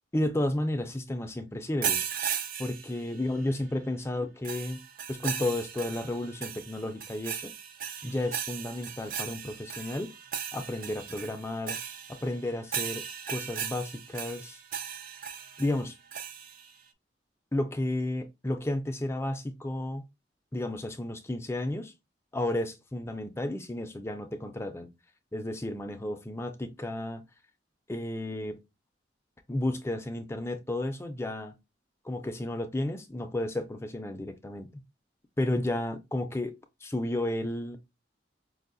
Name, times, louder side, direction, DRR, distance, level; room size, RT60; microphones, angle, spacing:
voice 1, 0.1-2.0 2.6-4.8 5.1-7.5 8.0-10.1 10.5-11.8 12.1-14.6 15.6-16.0 17.5-20.0 20.5-21.9 22.3-24.9 25.3-27.2 27.9-28.6 29.5-31.5 32.0-34.7 35.4-36.5 36.8-37.8, left 1 dB, 15° left, 0.4 m, -32 dB
sound 1, 1.8-3.5 4.4-16.7, right 8 dB, 50° right, 0.4 m, -37 dB
5.3 x 2.1 x 2.5 m
head